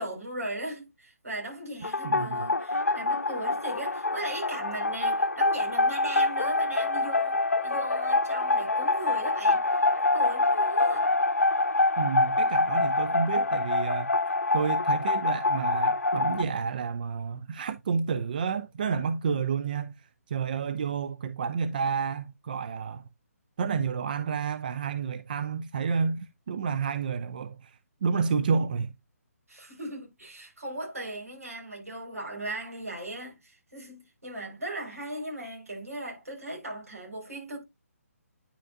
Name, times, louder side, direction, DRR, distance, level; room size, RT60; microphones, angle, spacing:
voice 1, 0.0-9.6 9.9-11.1 29.5-37.6, right 1 dB, 70° right, 4.8 m, -38 dB
sound 1, 1.8-16.4, left 2 dB, 70° left, 0.8 m, -26 dB
voice 2, 2.0-2.5 12.0-14.1 14.5-23.0 23.6-28.9, right 6 dB, 35° right, 0.4 m, -30 dB
9.9 x 5.4 x 2.5 m
figure-of-eight pair, 140°, 8 cm